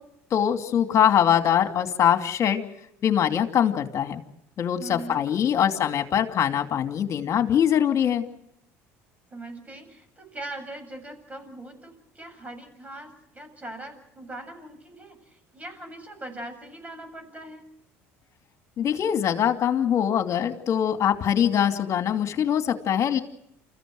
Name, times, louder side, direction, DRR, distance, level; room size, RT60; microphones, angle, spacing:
voice 1, 0.3-2.6 3.0-4.2 4.6-8.2 18.8-23.2, left 9 dB, 50° left, 6 dB, 2.6 m, -23 dB
voice 2, 4.8-5.3 9.3-17.7, right 1 dB, 20° right, 7 dB, 7.8 m, -41 dB
28.5 x 15.0 x 8.1 m, 0.78 s
supercardioid pair, 75°, 7 cm